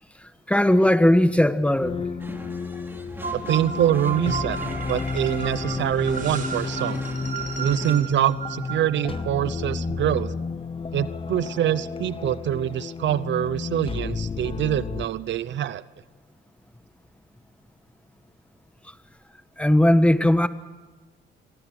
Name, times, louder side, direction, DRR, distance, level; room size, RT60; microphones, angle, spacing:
voice 1, 0.5-2.0 19.6-20.5, left 1 dB, 5° left, 1.3 m, -18 dB
sound 1, 1.8-15.1, left 4 dB, 25° left, 0.9 m, -32 dB
sound 2, 2.2-8.0, right 1 dB, 10° right, 3.6 m, -41 dB
sound 3, 3.2-9.3, right 6 dB, 40° right, 6.1 m, -34 dB
voice 2, 3.3-4.6 4.9-7.0 7.6-10.3 10.9-15.8, right 11 dB, 70° right, 0.8 m, -25 dB
28.5 x 23.0 x 6.3 m
cardioid pair, 90°, 20 cm